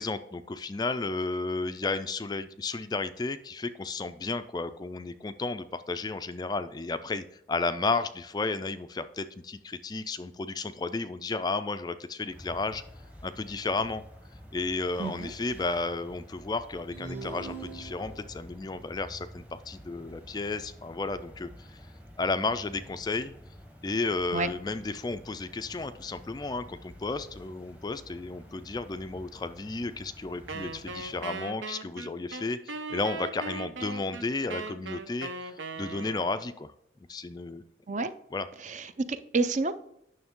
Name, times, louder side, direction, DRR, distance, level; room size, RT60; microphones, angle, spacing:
voice 1, 0.0-12.8 13.2-14.0 14.5-21.8 22.2-23.3 23.8-36.7 37.1-37.6 38.3-38.5, left 3 dB, 20° left, 11 dB, 0.3 m, -33 dB
sound 1, 12.3-31.2, equal, 10° right, 0.9 m, -50 dB
voice 2, 15.0-15.3 24.3-24.5 37.9-38.1 38.6-39.7, right 3 dB, 40° right, 12 dB, 0.5 m, -29 dB
sound 2, 16.9-18.5, right 3 dB, 60° right, 1.7 m, -41 dB
Wind instrument woodwind instrument, 30.5-36.5, right 3 dB, 80° right, 0.8 m, -39 dB
9.5 x 6.3 x 3.6 m, 0.78 s
head